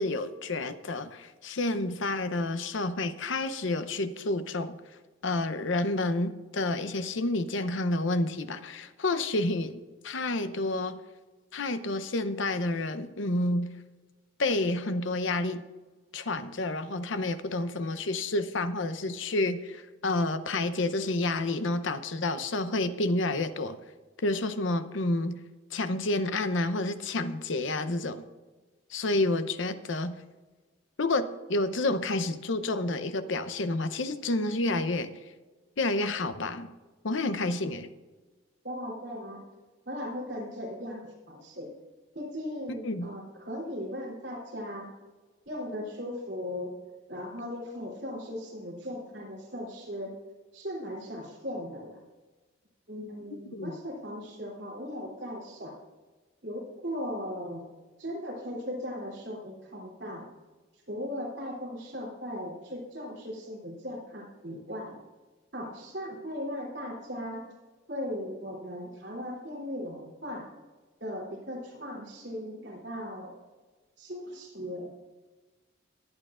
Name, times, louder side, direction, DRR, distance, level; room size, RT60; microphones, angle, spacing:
voice 1, 0.0-4.8 5.2-9.8 10.0-11.0 11.5-13.7 14.4-15.6 16.1-23.8 24.2-25.4 25.7-28.2 28.9-30.1 31.0-35.1 35.8-36.7 37.0-37.9 42.8-43.1 53.5-53.7, left 2 dB, 70° left, 11 dB, 0.7 m, -29 dB
voice 2, 38.6-39.4 39.8-41.7 42.1-44.9 45.5-46.7 47.1-50.1 50.5-52.0 52.9-55.7 56.4-57.6 58.0-60.3 60.9-65.0 65.5-67.4 67.9-70.5 71.0-73.3 74.0-74.9, equal, 60° right, -2 dB, 3.1 m, -38 dB
21.0 x 8.9 x 2.5 m, 1.3 s
head